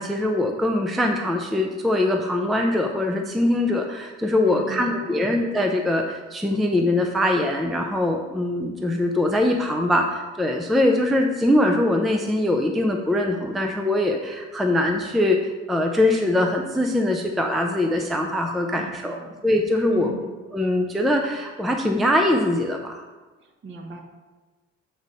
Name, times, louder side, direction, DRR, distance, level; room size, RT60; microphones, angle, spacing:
voice 1, 0.0-15.4 15.7-19.2 19.4-20.1 20.5-23.0, left 1 dB, ahead, 2 dB, 0.4 m, -22 dB
voice 2, 4.5-5.2 18.7-19.3 19.9-20.3 23.4-24.0, right 3 dB, 40° right, 3 dB, 1.1 m, -36 dB
8.0 x 4.0 x 5.3 m, 1.3 s
cardioid pair, 155°, 29 cm